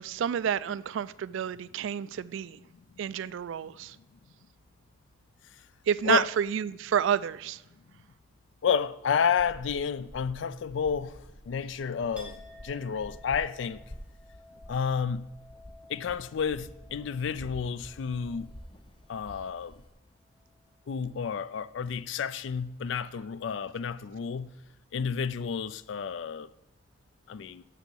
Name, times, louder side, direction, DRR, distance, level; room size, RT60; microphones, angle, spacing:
voice 1, 0.0-2.6 3.0-4.0 5.9-7.6, right 8 dB, 70° right, 0.3 m, -29 dB
voice 2, 8.6-11.2 11.4-13.8 14.7-15.3 15.9-18.5 19.1-19.8 20.9-24.5 24.9-26.5 27.3-27.6, left 6 dB, 70° left, 0.4 m, -30 dB
sound 1, 9.4-19.9, left 1 dB, 25° left, 0.6 m, -49 dB
Chink clink, 12.2-19.8 20.2-20.9, left 2 dB, 5° right, 1.5 m, -55 dB
7.1 x 6.7 x 6.2 m
head